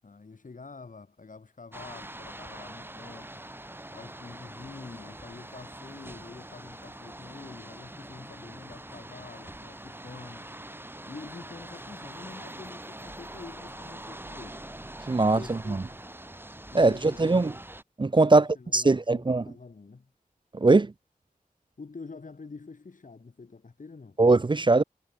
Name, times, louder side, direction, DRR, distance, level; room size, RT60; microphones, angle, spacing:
voice 1, 0.0-3.4 3.8-10.5 11.1-14.6 15.2-15.9 16.7-17.4 18.3-20.1 21.8-24.2, left 4 dB, 60° left, 2.7 m, -46 dB
sound 1, 1.7-17.8, right 1 dB, 15° right, 1.8 m, -44 dB
voice 2, 15.1-15.8 16.7-17.5 18.0-18.5 18.7-19.4 20.5-20.9 24.2-24.8, right 3 dB, 30° right, 0.6 m, -21 dB
wide cardioid pair, 70°, 15 cm